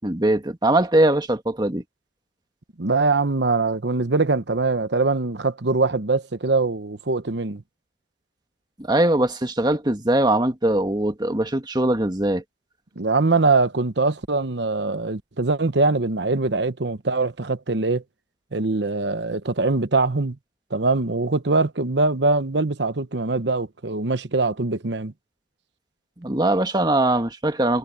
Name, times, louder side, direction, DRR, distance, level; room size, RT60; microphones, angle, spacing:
voice 1, 0.0-1.8 8.8-12.4 26.2-27.8, right 1 dB, 25° right, 1.8 m, -21 dB
voice 2, 2.8-7.6 13.0-18.0 18.5-20.4 20.7-25.1, right 3 dB, 65° right, 1.0 m, -22 dB
head